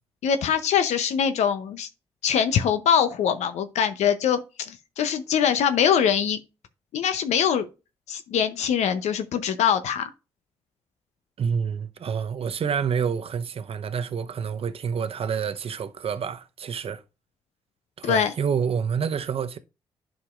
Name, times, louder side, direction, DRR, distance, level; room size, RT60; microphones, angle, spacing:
voice 1, 0.2-1.9 2.2-6.4 6.9-7.7 8.1-10.1 18.0-18.3, left 8 dB, 75° left, 0.7 m, -23 dB
voice 2, 11.4-17.0 18.0-19.6, right 7 dB, 55° right, 0.8 m, -28 dB
11.0 x 5.1 x 2.5 m
hypercardioid pair, 45°, 12 cm